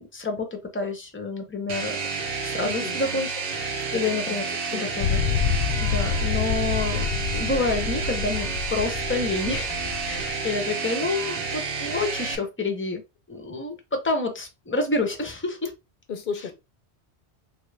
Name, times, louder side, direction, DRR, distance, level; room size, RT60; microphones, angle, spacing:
voice 1, 0.0-2.0 2.4-5.2 5.8-13.0 13.3-15.7, left 3 dB, 15° left, 0.5 m, -29 dB
sound 1, 1.7-12.4, right 5 dB, 65° right, 0.8 m, -30 dB
voice 2, 2.6-3.0 3.9-4.3 4.7-4.9 16.1-16.5, left 6 dB, 55° left, 0.7 m, -34 dB
sound 2, 5.0-10.3, left 7 dB, 85° left, 0.9 m, -27 dB
3.3 x 2.4 x 3.2 m
omnidirectional pair, 1.1 m